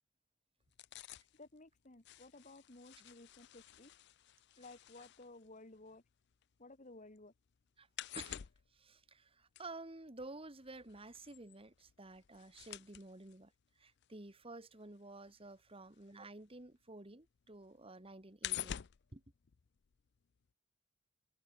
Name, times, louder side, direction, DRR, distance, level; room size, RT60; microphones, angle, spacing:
sound 1, 0.6-6.7 7.0-16.8 17.1-20.2 20.5-20.6, left 12 dB, 55° left, 0.5 m, -50 dB
voice 1, 1.3-3.9 4.6-6.0 6.6-7.3, left 2 dB, 35° left, 1.8 m, -56 dB
voice 2, 8.7-13.5 13.8-18.8 19.1-19.2, right 2 dB, 25° right, 1.7 m, -52 dB
head